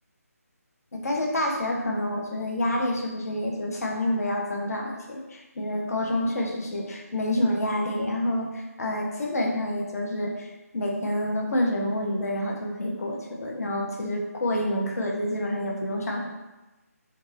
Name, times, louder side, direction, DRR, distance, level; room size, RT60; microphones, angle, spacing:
voice 1, 0.9-16.3, left 1 dB, 70° left, -1 dB, 0.7 m, -28 dB
2.4 x 2.3 x 3.2 m, 1.1 s
figure-of-eight pair, 165°, 9 cm